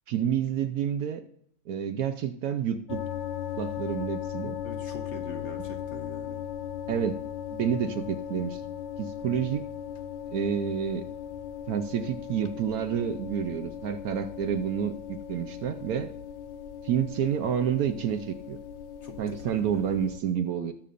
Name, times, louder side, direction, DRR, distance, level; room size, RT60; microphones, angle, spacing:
voice 1, 0.1-1.2 1.7-3.0 3.6-4.6 6.9-7.2 7.5-8.6 9.0-9.6 10.3-11.1 11.7-16.1 16.8-18.6 19.2-20.7, right 8 dB, 75° right, 8 dB, 1.0 m, -29 dB
sound 1, 2.9-20.2, left 9 dB, 70° left, 0.7 m, -38 dB
voice 2, 4.6-6.5 19.0-20.1, left 4 dB, 50° left, 4 dB, 1.1 m, -43 dB
19.0 x 6.7 x 2.5 m, 0.69 s
omnidirectional pair, 1.7 m